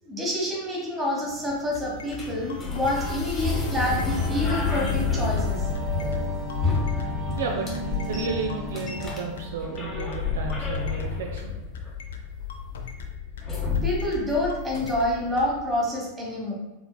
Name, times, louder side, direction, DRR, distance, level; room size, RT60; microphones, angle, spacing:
voice 1, 0.0-5.7 13.8-16.5, left 1 dB, 15° right, -2 dB, 1.2 m, -27 dB
sound 1, 1.3-15.3, left 5 dB, 15° left, 1.1 m, -30 dB
sound 2, 1.5-15.5, left 6 dB, 60° left, 0.5 m, -41 dB
sound 3, 3.4-10.3, right 1 dB, 35° right, 1.0 m, -36 dB
voice 2, 7.4-7.7 8.1-11.5, right 4 dB, 60° right, 2 dB, 0.4 m, -32 dB
4.4 x 3.9 x 2.2 m, 1.1 s
figure-of-eight pair, 90°, 0 cm